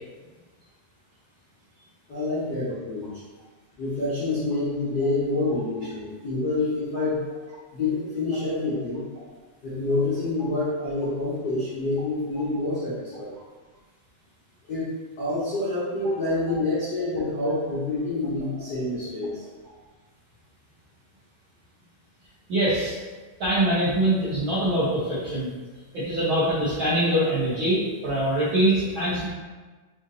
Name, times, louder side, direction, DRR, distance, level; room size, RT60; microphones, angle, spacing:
voice 1, 2.1-3.2 3.8-7.3 7.7-9.0 9.6-13.3 14.7-14.9 15.2-19.4, left 2 dB, 85° left, -11 dB, 0.9 m, -27 dB
voice 2, 22.5-22.9 23.4-25.5 25.9-29.3, right 1 dB, 70° right, -11 dB, 1.2 m, -23 dB
6.1 x 2.6 x 2.7 m, 1.3 s
omnidirectional pair, 3.6 m